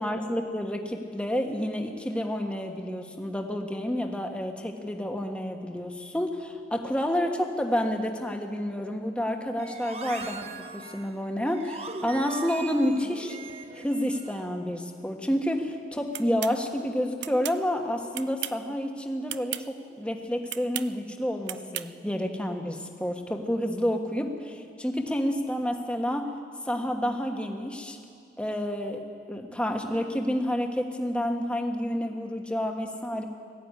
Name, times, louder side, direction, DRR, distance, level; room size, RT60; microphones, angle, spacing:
voice 1, 0.0-13.4 13.7-26.4 26.6-28.0 28.4-29.0 29.3-33.2, equal, 5° left, 3 dB, 1.4 m, -29 dB
sound 1, 9.6-14.5, right 3 dB, 35° right, 1.0 m, -40 dB
sound 2, 16.1-16.6 17.2-17.6 18.1-18.7 19.3-19.7 20.5-20.9 21.5-21.9, right 13 dB, 80° right, 0.6 m, -35 dB
19.5 x 15.0 x 9.7 m, 2.6 s
head